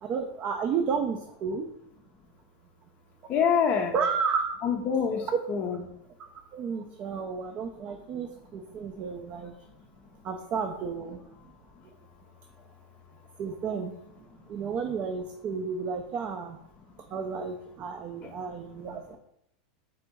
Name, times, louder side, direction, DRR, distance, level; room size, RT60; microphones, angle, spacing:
voice 1, 0.0-1.7 3.9-4.5 6.5-9.5 10.2-11.2 13.4-13.9 14.5-16.6 17.1-19.2, right 6 dB, 35° right, 4 dB, 0.4 m, -32 dB
voice 2, 3.3-4.0 4.6-5.8 18.2-18.3, left 7 dB, 35° left, 4 dB, 0.5 m, -26 dB
3.5 x 2.6 x 4.4 m, 0.75 s
supercardioid pair, 140°, 4 cm